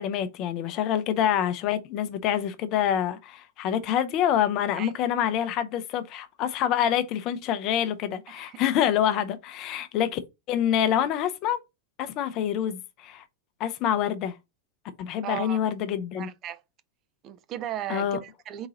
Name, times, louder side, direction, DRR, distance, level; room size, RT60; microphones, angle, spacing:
voice 1, 0.0-10.2 10.5-11.6 12.0-13.2 13.6-14.3 15.0-16.3 17.9-18.2, left 10 dB, 40° left, 0.5 m, -26 dB
voice 2, 8.3-8.7 15.2-15.6 16.2-16.6 17.2-18.7, right 12 dB, 35° right, 0.4 m, -36 dB
3.9 x 2.8 x 3.8 m
figure-of-eight pair, 90°, 0 cm